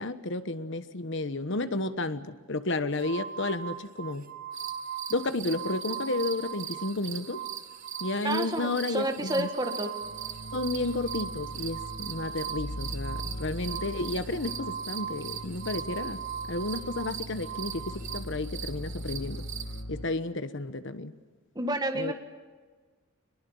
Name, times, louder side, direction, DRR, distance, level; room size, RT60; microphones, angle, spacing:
voice 1, 0.0-4.3 5.1-7.4 8.0-9.5 10.5-16.2 16.5-19.5 19.9-21.1 21.9-22.1, left 2 dB, 55° left, 12 dB, 1.2 m, -32 dB
sound 1, 3.0-7.0 7.2-18.2, right 8 dB, 40° right, 1.2 m, -40 dB
sound 2, 4.5-19.8, right 10 dB, 55° right, 1.3 m, -42 dB
voice 2, 8.2-9.9 21.6-22.1, right 1 dB, 20° right, 5 dB, 1.8 m, -30 dB
sound 3, 10.0-20.0, equal, 75° left, 1.7 m, -40 dB
23.5 x 22.0 x 7.2 m, 1.5 s
head